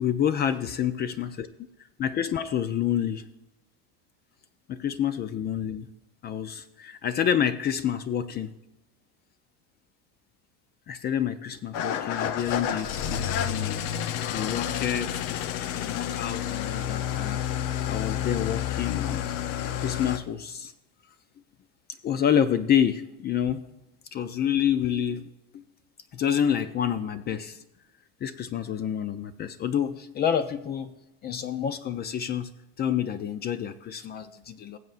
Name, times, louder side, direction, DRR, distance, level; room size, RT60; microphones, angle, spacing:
voice 1, 0.0-1.5 2.0-3.3 4.7-5.9 6.2-8.5 10.9-13.8 14.3-17.4 17.9-19.2 19.8-20.7 22.0-23.6 24.1-25.6 26.1-27.6 28.2-30.9 31.2-32.5 32.8-34.8, left 9 dB, 30° left, 12 dB, 0.4 m, -28 dB
Engine starting / Idling, 11.7-20.2, left 10 dB, 60° left, 0.7 m, -30 dB
19.0 x 7.8 x 2.5 m, 0.96 s
cardioid pair, 145°, 35 cm